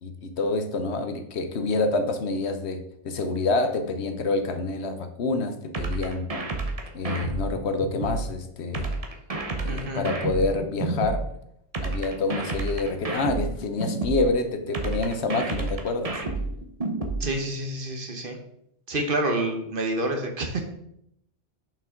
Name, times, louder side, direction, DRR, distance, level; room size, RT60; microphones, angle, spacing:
voice 1, 0.0-6.3 6.9-8.9 9.6-11.2 11.8-16.2, left 3 dB, 75° left, 7 dB, 1.1 m, -27 dB
sound 1, 5.7-8.2 8.7-11.2 11.7-14.2 14.7-17.2, right 3 dB, 35° right, 1.0 m, -29 dB
voice 2, 9.7-10.0 17.2-18.4 18.9-20.6, right 1 dB, 55° right, 3 dB, 1.2 m, -28 dB
7.0 x 5.7 x 3.7 m, 0.74 s
omnidirectional pair, 1.1 m